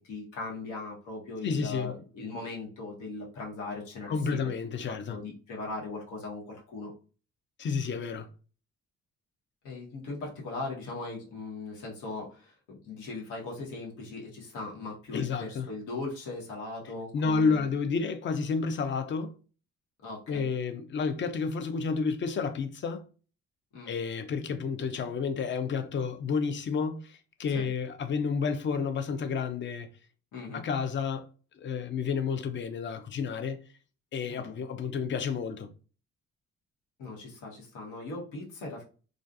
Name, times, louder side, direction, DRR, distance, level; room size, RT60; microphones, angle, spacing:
voice 1, 0.0-4.5 4.9-6.9 9.6-17.7 20.0-20.5 23.7-23.9 27.5-27.7 30.3-30.6 34.3-34.5 37.0-38.9, left 3 dB, 90° left, 1.1 m, -39 dB
voice 2, 1.4-1.9 4.1-5.2 7.6-8.3 15.1-15.7 17.1-19.3 20.3-23.0 23.9-29.9 30.5-31.3 31.5-33.6 34.1-35.7, left 5 dB, 40° left, 0.5 m, -30 dB
2.5 x 2.3 x 2.4 m
cardioid pair, 90°, 30 cm